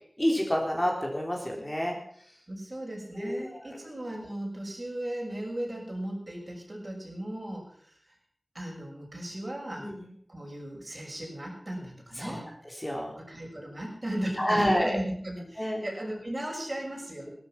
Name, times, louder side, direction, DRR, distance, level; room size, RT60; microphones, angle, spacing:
voice 1, 0.2-2.0 3.2-3.6 9.8-10.1 12.2-12.4 12.8-13.1 14.4-15.0 15.6-15.8, equal, 15° left, -1 dB, 3.6 m, -28 dB
voice 2, 2.5-7.9 8.5-9.9 10.3-12.5 13.1-17.3, right 1 dB, 40° right, -1 dB, 6.6 m, -36 dB
17.0 x 13.5 x 6.0 m, 0.62 s
wide cardioid pair, 65°, 0 cm